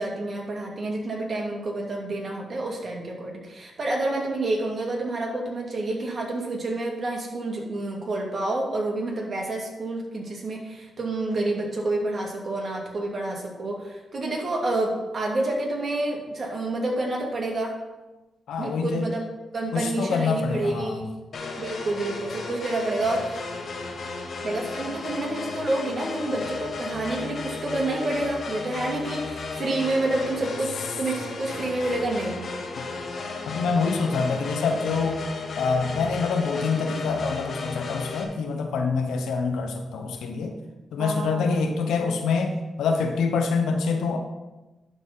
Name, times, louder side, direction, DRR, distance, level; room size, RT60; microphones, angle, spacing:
voice 1, 0.0-17.8 18.6-19.2 19.5-21.1 21.6-23.4 24.4-32.5 41.0-41.6, right 2 dB, 50° right, -1 dB, 2.5 m, -29 dB
voice 2, 18.5-19.1 19.7-21.0 32.8-32.9 33.5-35.2 35.5-40.5 40.9-44.2, left 4 dB, 85° left, 5 dB, 1.0 m, -26 dB
sound 1, 21.3-38.2, left 4 dB, 65° left, 1.5 m, -34 dB
11.5 x 4.2 x 5.5 m, 1.1 s
cardioid pair, 55°, 0 cm